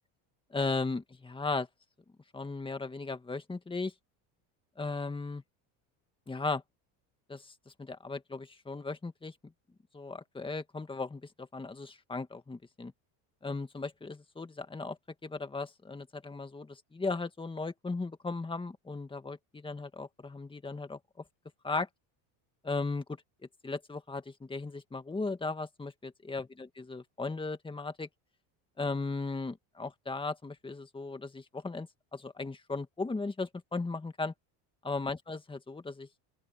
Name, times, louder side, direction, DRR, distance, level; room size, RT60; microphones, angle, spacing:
voice 1, 0.5-1.7 2.3-3.9 4.8-5.4 6.3-6.6 7.3-7.5 7.8-9.5 9.9-12.9 13.4-21.0 21.6-21.9 22.6-23.0 23.6-28.1 28.8-34.3 34.8-36.1, left 3 dB, 10° left, 1.9 m, -36 dB
open air
cardioid pair, 130°, 43 cm